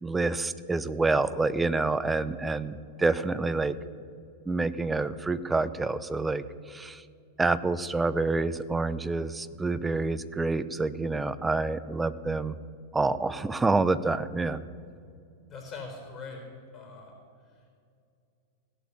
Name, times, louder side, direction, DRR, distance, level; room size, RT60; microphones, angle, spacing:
voice 1, 0.0-3.8 4.5-7.0 7.4-12.6 12.9-14.6, right 3 dB, 10° right, 15 dB, 0.6 m, -27 dB
voice 2, 15.5-16.4 16.7-17.1 17.5-17.7, left 4 dB, 25° left, 1 dB, 4.4 m, -42 dB
17.0 x 8.2 x 8.2 m, 2.4 s
hypercardioid pair, 110°, 0 cm